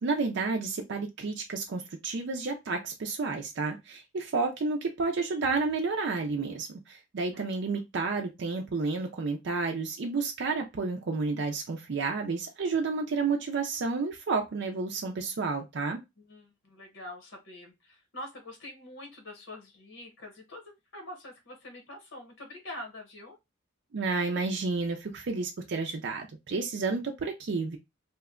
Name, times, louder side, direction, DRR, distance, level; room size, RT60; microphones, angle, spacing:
voice 1, 0.0-16.0 23.9-27.8, right 4 dB, 60° right, 2 dB, 0.4 m, -31 dB
voice 2, 16.2-23.4, left 1 dB, 70° left, 3 dB, 1.0 m, -45 dB
2.8 x 2.2 x 3.5 m, 0.21 s
head